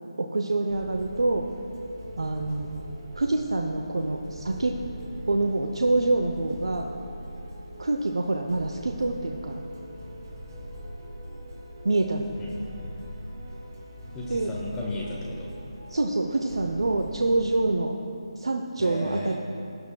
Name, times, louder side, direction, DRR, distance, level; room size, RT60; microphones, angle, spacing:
voice 1, 0.2-1.5 2.2-2.7 3.1-4.8 5.3-6.9 7.8-9.6 11.8-12.3 14.3-14.5 15.9-17.9 18.4-19.3, right 2 dB, 70° right, 3 dB, 0.7 m, -26 dB
sound 1, 0.7-17.7, equal, 40° right, 2.8 m, -41 dB
voice 2, 14.1-15.5 18.8-19.3, left 2 dB, 10° left, -4 dB, 1.0 m, -34 dB
19.5 x 9.6 x 2.3 m, 2.8 s
figure-of-eight pair, 155°, 3 cm